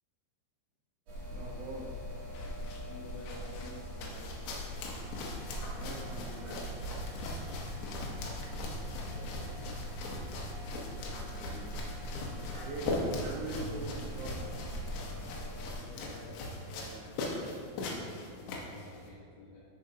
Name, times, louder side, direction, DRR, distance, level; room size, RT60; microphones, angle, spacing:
sound 1, 1.1-15.7, equal, 55° right, 1.9 m, -42 dB
voice 1, 1.3-2.0 5.7-6.7 11.1-11.8 12.6-14.7, right 2 dB, 75° right, -3 dB, 2.9 m, -43 dB
sound 2, 2.1-19.1, left 2 dB, 90° left, 3.7 m, -40 dB
voice 2, 2.7-4.3 9.1-10.0 15.7-19.7, left 1 dB, 65° left, -8 dB, 2.8 m, -52 dB
13.0 x 5.6 x 2.8 m, 2.3 s
omnidirectional pair, 5.7 m